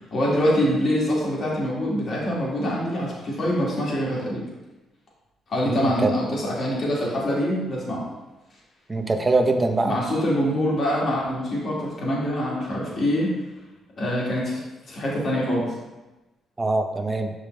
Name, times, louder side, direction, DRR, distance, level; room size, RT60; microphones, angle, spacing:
voice 1, 0.1-4.5 5.5-8.0 9.8-13.3 14.0-14.6 14.9-15.7, equal, 55° left, -5 dB, 2.1 m, -24 dB
voice 2, 5.6-6.1 8.9-10.0 16.6-17.3, right 2 dB, 20° right, 5 dB, 0.7 m, -23 dB
6.4 x 5.2 x 3.2 m, 1.1 s
cardioid pair, 90°, 0 cm